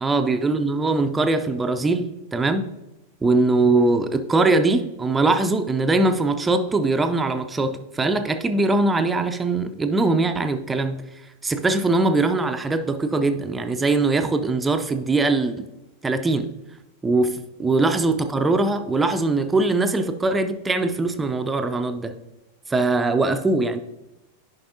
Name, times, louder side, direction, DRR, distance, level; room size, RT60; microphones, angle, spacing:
voice 1, 0.0-2.6 3.2-11.0 11.4-15.7 16.0-16.5 17.0-22.1 22.7-23.9, right 3 dB, 10° right, 7 dB, 0.4 m, -21 dB
10.0 x 5.4 x 2.7 m, 0.96 s
figure-of-eight pair, 90°, 0 cm